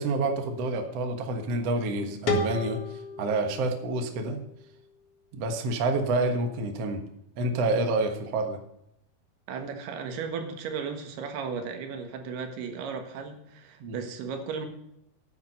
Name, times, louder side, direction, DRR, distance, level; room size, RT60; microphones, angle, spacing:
voice 1, 0.0-4.4 5.3-7.0 7.4-8.6 13.8-14.0, right 2 dB, 55° right, 5 dB, 1.8 m, -28 dB
sound 1, 2.3-5.1, left 2 dB, 50° left, 2.0 m, -33 dB
voice 2, 9.5-14.7, right 5 dB, 75° right, 6 dB, 3.4 m, -35 dB
10.5 x 9.2 x 5.4 m, 0.79 s
omnidirectional pair, 4.6 m